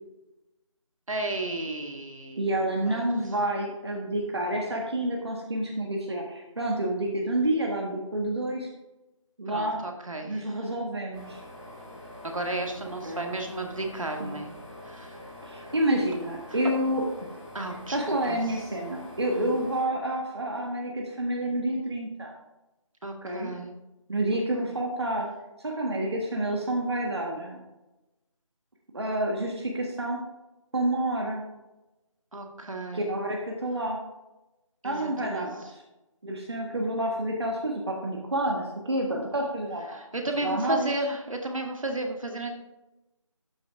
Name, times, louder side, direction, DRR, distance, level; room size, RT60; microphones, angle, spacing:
voice 1, 1.1-2.5 2.9-3.0 9.5-10.5 12.2-14.5 14.8-15.7 17.5-18.6 19.3-19.6 23.0-23.7 32.3-33.1 34.8-35.5 39.9-42.5, right 2 dB, 75° right, 3 dB, 2.1 m, -33 dB
voice 2, 2.4-8.7 9.4-9.8 10.2-11.4 13.0-13.2 14.2-14.4 15.4-17.3 17.9-22.3 23.2-23.5 24.1-25.3 25.6-27.6 28.9-30.2 30.7-31.4 32.9-34.0 34.8-35.8 36.2-39.9 40.4-40.9, right 1 dB, 50° right, 0 dB, 1.7 m, -29 dB
sound 1, 11.1-19.8, left 1 dB, 5° left, 2.4 m, -45 dB
13.5 x 5.7 x 3.6 m, 0.99 s
figure-of-eight pair, 175°, 17 cm